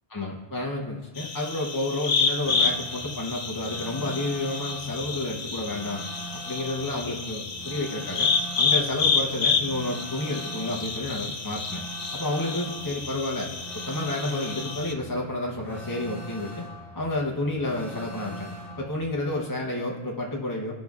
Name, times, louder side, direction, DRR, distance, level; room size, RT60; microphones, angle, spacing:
voice 1, 0.1-6.0 6.5-8.3 8.6-11.8 12.1-13.5 13.9-16.6 16.9-18.5 18.8-20.7, left 1 dB, 25° left, -2 dB, 0.6 m, -30 dB
sound 1, 1.2-14.9, left 5 dB, 65° left, 0.9 m, -29 dB
sound 2, 2.4-19.1, right 1 dB, ahead, 1.2 m, -43 dB
15.5 x 5.2 x 2.4 m, 1.3 s
omnidirectional pair, 1.1 m